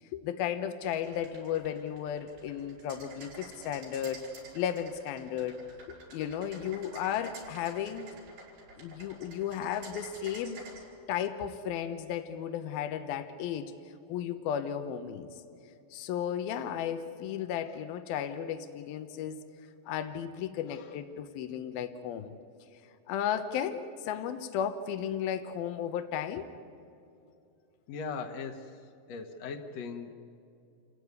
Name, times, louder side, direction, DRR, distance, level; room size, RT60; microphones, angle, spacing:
voice 1, 0.1-5.6 5.9-8.1 8.8-10.6 11.1-13.7 14.1-15.4 15.9-19.4 19.9-22.3 23.1-26.5, left 9 dB, 85° left, 8 dB, 2.8 m, -34 dB
sound 1, 0.8-10.8, right 3 dB, 85° right, 8.0 m, -49 dB
voice 2, 27.9-28.8 29.1-30.1, left 5 dB, 60° left, 3 dB, 2.0 m, -39 dB
29.5 x 16.0 x 9.5 m, 2.6 s
omnidirectional pair, 4.3 m